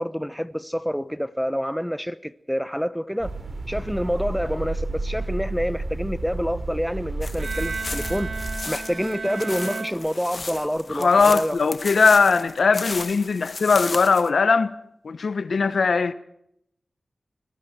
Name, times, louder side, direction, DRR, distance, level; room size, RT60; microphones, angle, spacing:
voice 1, 0.0-3.3 3.7-8.3 8.7-11.6, equal, ahead, 1.0 m, -27 dB
sound 1, 3.2-8.6, right 2 dB, 50° right, 4.2 m, -31 dB
sound 2, 7.2-14.3, left 3 dB, 55° left, 1.8 m, -35 dB
Bowed string instrument, 7.4-10.7, right 4 dB, 85° right, 2.5 m, -34 dB
voice 2, 10.9-14.7 15.0-16.1, left 4 dB, 80° left, 1.2 m, -19 dB
29.5 x 21.5 x 4.5 m
wide cardioid pair, 80°, 0 cm